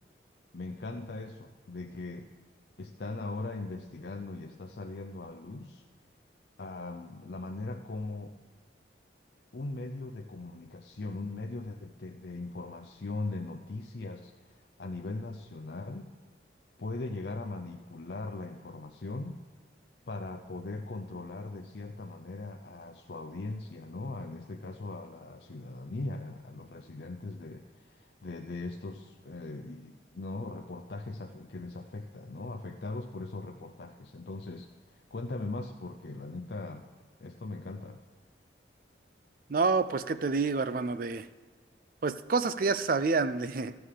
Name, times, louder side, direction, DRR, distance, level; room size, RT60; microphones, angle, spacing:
voice 1, 0.5-2.3 2.8-5.8 6.6-8.3 9.5-16.1 16.8-19.4 20.1-36.9 37.2-38.0, left 2 dB, 60° left, 2 dB, 0.6 m, -40 dB
voice 2, 39.5-41.3 42.0-43.8, right 4 dB, 50° right, 13 dB, 0.4 m, -28 dB
13.0 x 7.9 x 4.9 m, 1.4 s
head